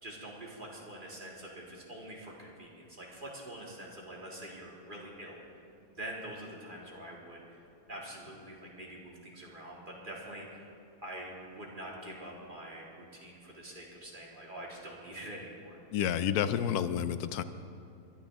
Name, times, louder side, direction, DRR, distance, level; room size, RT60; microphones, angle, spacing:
voice 1, 0.0-5.4 5.9-7.6 7.9-10.7 11.0-15.8, right 1 dB, 30° right, -4 dB, 2.6 m, -45 dB
voice 2, 15.9-17.4, left 9 dB, 75° left, 12 dB, 1.1 m, -30 dB
21.5 x 13.0 x 3.6 m, 2.5 s
omnidirectional pair, 1.7 m